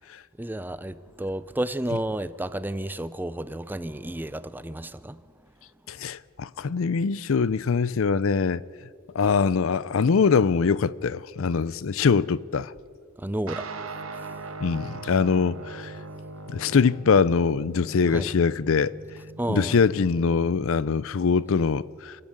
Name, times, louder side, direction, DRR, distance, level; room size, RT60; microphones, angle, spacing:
voice 1, 0.4-5.2 13.2-13.7 14.2-14.3 18.1-18.3 19.4-19.8, right 1 dB, 10° right, 0.5 m, -31 dB
voice 2, 5.9-8.6 9.1-12.7 14.6-15.9 16.5-18.9 19.5-22.2, left 5 dB, 65° left, 0.5 m, -23 dB
sound 1, 13.5-21.3, right 3 dB, 70° right, 1.6 m, -40 dB
27.5 x 14.0 x 8.8 m
head